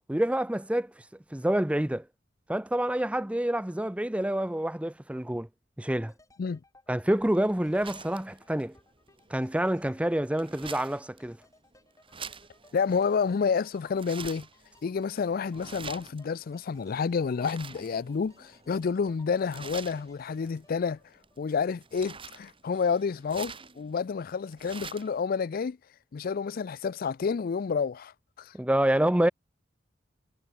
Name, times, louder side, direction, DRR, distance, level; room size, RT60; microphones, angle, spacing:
voice 1, 0.1-0.9 1.3-2.1 2.5-5.5 5.8-6.1 6.9-8.7 9.3-11.4 28.5-29.3, right 1 dB, 5° right, 0.6 m, -27 dB
sound 1, 6.1-22.0 22.3-22.4, left 2 dB, 20° left, 4.9 m, -61 dB
sound 2, 7.1-25.2, right 5 dB, 30° right, 6.1 m, -47 dB
voice 2, 12.7-14.5 14.8-21.0 21.4-25.8 26.1-28.5, left 5 dB, 50° left, 0.4 m, -29 dB
head